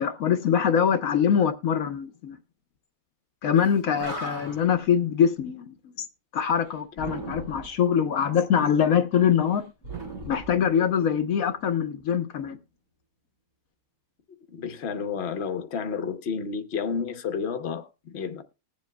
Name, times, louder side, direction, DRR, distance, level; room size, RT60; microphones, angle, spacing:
voice 1, 0.0-2.4 3.4-5.7 6.3-9.6 10.2-12.6, left 8 dB, 75° left, 1.2 m, -23 dB
Animal, 3.6-3.7 3.9-4.8 6.9-7.8 9.8-11.1, right 2 dB, 70° right, 5.5 m, -37 dB
voice 2, 14.5-18.4, left 6 dB, 50° left, 1.1 m, -31 dB
20.0 x 7.4 x 2.2 m
omnidirectional pair, 1.5 m